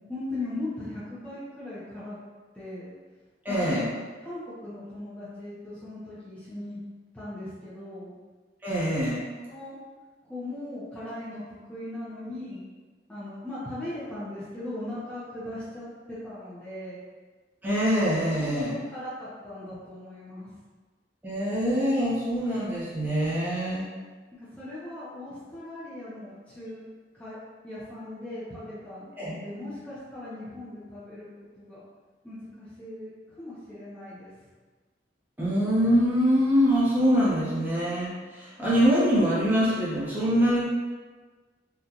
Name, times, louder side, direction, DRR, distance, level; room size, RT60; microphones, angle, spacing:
voice 1, 0.1-2.2 2.5-2.9 3.5-3.8 4.2-6.8 7.1-8.1 9.5-9.8 10.2-12.6 13.1-17.0 18.4-20.5 24.3-26.8 27.1-27.4 27.6-31.3 31.6-31.8 32.2-33.1 33.4-34.3, left 1 dB, 10° left, -12 dB, 0.7 m, -38 dB
voice 2, 3.4-3.9 8.6-9.2 17.6-18.8 21.2-23.9 29.2-29.4 35.4-40.7, equal, 10° right, -10 dB, 0.9 m, -24 dB
3.8 x 2.3 x 2.8 m, 1.4 s
head